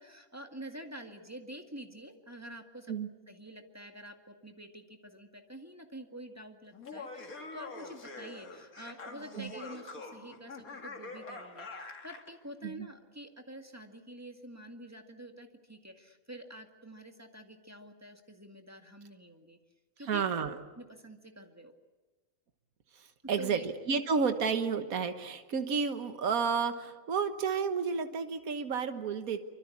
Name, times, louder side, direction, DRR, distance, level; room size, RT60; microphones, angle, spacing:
voice 1, 0.0-2.9 3.3-19.6 20.0-20.2 20.8-21.7 23.4-23.7, right 1 dB, 10° right, 4 dB, 1.9 m, -47 dB
Laughter, 6.7-12.3, left 3 dB, 80° left, 2.6 m, -45 dB
voice 2, 20.1-20.6 23.0-29.4, right 5 dB, 80° right, 8 dB, 1.7 m, -31 dB
25.5 x 24.5 x 8.5 m, 1.2 s
omnidirectional pair, 1.5 m